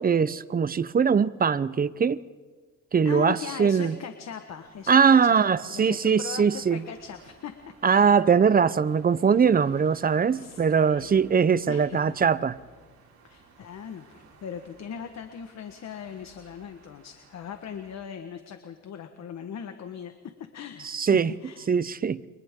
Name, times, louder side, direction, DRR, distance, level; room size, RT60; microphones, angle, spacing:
voice 1, 0.0-2.2 2.9-4.0 4.9-6.8 7.8-12.5 20.8-21.3 21.7-22.2, right 6 dB, 30° right, 16 dB, 0.7 m, -21 dB
voice 2, 3.0-4.9 5.2-8.2 10.3-11.1 11.7-12.1 13.2-20.1 20.5-21.6, left 8 dB, 60° left, 7 dB, 1.5 m, -39 dB
sound 1, 4.5-17.9, right 4 dB, 65° right, 6.1 m, -56 dB
29.5 x 24.0 x 3.8 m, 1.4 s
cardioid pair, 90°, 30 cm